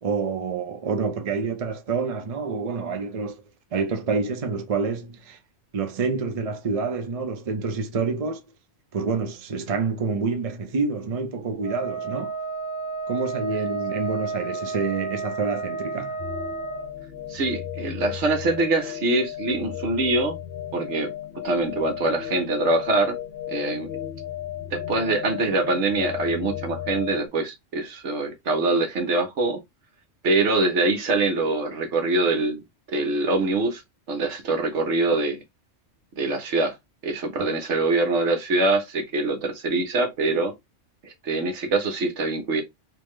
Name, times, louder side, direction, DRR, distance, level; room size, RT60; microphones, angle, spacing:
voice 1, 0.0-3.4 3.7-5.4 5.7-8.4 8.9-12.4 13.1-16.2 37.4-37.5, right 4 dB, 40° right, 0.5 m, -27 dB
Wind instrument woodwind instrument, 11.6-16.9, right 4 dB, 5° right, 1.4 m, -31 dB
sound 1, 16.2-27.3, left 11 dB, 60° left, 0.7 m, -35 dB
voice 2, 17.3-20.4 20.7-21.1 21.4-23.2 23.5-23.9 24.7-29.6 30.2-33.8 34.1-35.4 36.2-36.7 37.0-40.5 41.0-42.6, right 2 dB, 70° right, 1.2 m, -24 dB
3.4 x 2.8 x 3.1 m
omnidirectional pair, 1.3 m